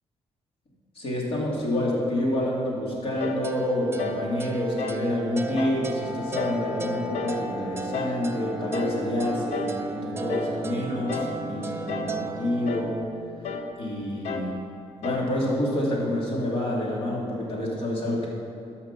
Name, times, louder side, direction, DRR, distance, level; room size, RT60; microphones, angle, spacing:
voice 1, 0.9-13.0 13.8-14.6 15.0-18.3, left 1 dB, 55° left, -3 dB, 2.5 m, -28 dB
sound 1, 3.2-3.5 4.0-4.3 4.8-5.1 5.6-5.8 6.4-6.7 7.1-7.4 7.9-8.2 8.7-9.0 9.5-9.8 10.3-10.6 11.1-11.4 11.9-12.2 12.7-12.9 13.4-13.7 14.2-14.5 15.0-15.3, left 5 dB, 85° left, 0.8 m, -32 dB
sound 2, 3.4-13.0, right 2 dB, 20° right, 0.5 m, -34 dB
12.5 x 5.8 x 6.0 m, 2.6 s
cardioid pair, 145°, 11 cm